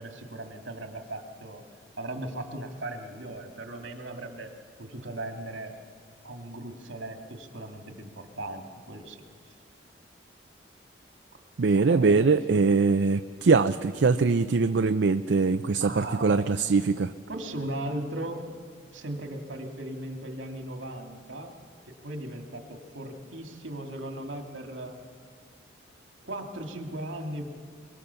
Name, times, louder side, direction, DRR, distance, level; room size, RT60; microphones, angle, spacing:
voice 1, 0.0-1.6 2.0-4.5 4.8-5.8 6.2-9.2 11.8-12.6 15.8-16.5 17.3-18.4 18.9-21.5 21.9-25.0 26.2-27.5, right 1 dB, 85° right, 4 dB, 2.3 m, -37 dB
voice 2, 11.6-17.1, right 4 dB, 70° right, 10 dB, 0.5 m, -22 dB
23.5 x 22.0 x 7.0 m, 2.1 s
head